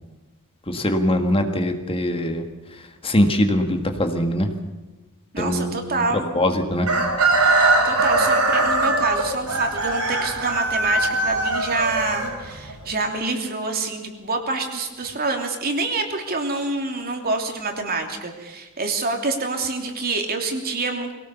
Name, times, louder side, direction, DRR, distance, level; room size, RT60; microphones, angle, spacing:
voice 1, 0.7-2.4 2.7-4.5 5.4-6.0 6.3-6.9, left 1 dB, 25° left, 5 dB, 1.6 m, -22 dB
voice 2, 5.3-6.3 7.8-21.1, right 3 dB, 45° right, 4 dB, 3.0 m, -26 dB
Chicken rooster, 6.8-12.8, right 2 dB, 85° right, 5.2 m, -21 dB
22.5 x 17.5 x 7.0 m, 1.2 s
head